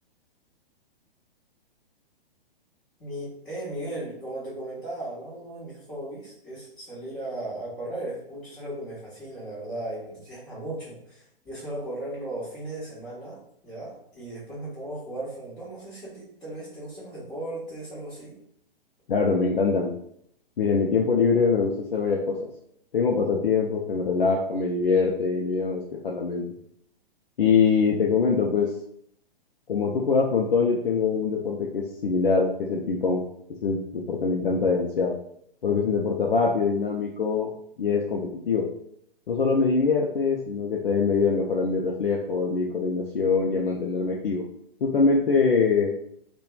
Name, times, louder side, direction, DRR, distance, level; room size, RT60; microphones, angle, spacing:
voice 1, 3.0-18.4, right 1 dB, 15° left, -13 dB, 1.0 m, -36 dB
voice 2, 19.1-19.9 20.6-22.5 22.9-26.4 27.4-28.7 29.7-33.2 33.6-35.1 35.6-37.5 37.8-38.7 39.3-44.4 44.8-46.0, left 5 dB, 65° left, -1 dB, 0.4 m, -23 dB
2.9 x 2.2 x 2.2 m, 0.70 s
figure-of-eight pair, 115°, 30 cm